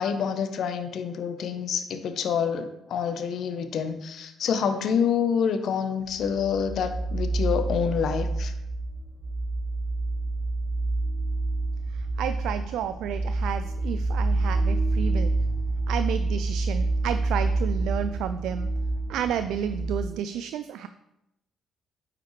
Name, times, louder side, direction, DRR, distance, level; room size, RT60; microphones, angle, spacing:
voice 1, 0.0-8.5, left 7 dB, 65° left, 9 dB, 0.8 m, -27 dB
sound 1, 6.1-20.1, right 2 dB, 60° right, 2.6 m, -28 dB
voice 2, 11.9-15.4 15.9-18.7 19.1-20.9, right 9 dB, 75° right, 11 dB, 0.3 m, -31 dB
9.3 x 5.0 x 3.2 m, 0.86 s
supercardioid pair, 55°, 0 cm